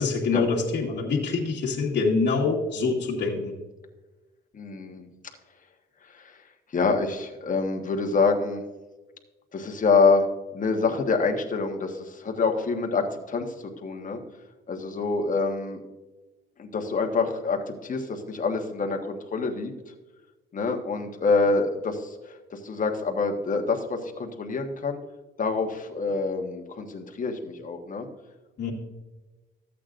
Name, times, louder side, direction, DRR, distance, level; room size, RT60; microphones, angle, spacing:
voice 1, 0.0-3.5 28.6-28.7, left 4 dB, 60° left, -6 dB, 1.7 m, -25 dB
voice 2, 4.5-5.1 6.0-6.4 6.7-8.6 9.5-10.3 10.5-14.2 14.7-15.8 16.6-19.7 20.5-25.0 25.4-28.1, left 4 dB, 40° left, 3 dB, 1.4 m, -26 dB
13.5 x 8.4 x 2.6 m, 1.2 s
cardioid pair, 90°, 20 cm